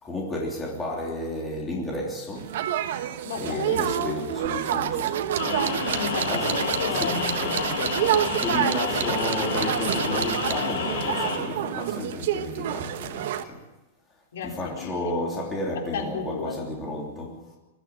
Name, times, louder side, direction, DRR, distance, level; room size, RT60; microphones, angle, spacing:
voice 1, 0.0-2.6 3.4-5.5 6.3-6.5 6.9-7.2 8.4-13.6 14.4-17.5, left 1 dB, 10° left, 3.2 m, -32 dB
sound 1, 2.4-13.4, right 11 dB, 50° right, 1.2 m, -29 dB
voice 2, 3.2-3.8 5.9-8.0 14.3-15.1 15.9-16.6, left 6 dB, 75° left, 3.9 m, -33 dB
sound 2, 3.7-10.8, right 9 dB, 70° right, 1.2 m, -32 dB
sound 3, 5.4-11.4, left 4 dB, 55° left, 6.7 m, -29 dB
21.5 x 14.0 x 9.0 m
supercardioid pair, 180°, 0 cm